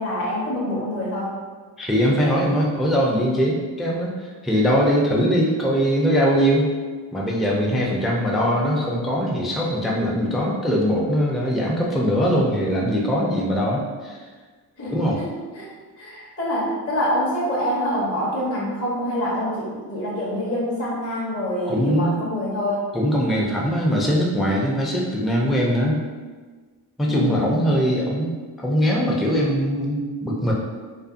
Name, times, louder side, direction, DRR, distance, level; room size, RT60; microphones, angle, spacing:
voice 1, 0.0-1.4 14.8-15.3 15.5-15.7 16.0-22.8 27.1-27.7, equal, 30° left, -5 dB, 0.8 m, -26 dB
voice 2, 1.8-6.7 7.1-14.2 14.9-15.2 21.7-22.2 22.9-26.0 27.0-28.4 28.6-30.5, equal, ahead, -3 dB, 0.4 m, -21 dB
2.5 x 2.4 x 2.5 m, 1.4 s
supercardioid pair, 45°, 49 cm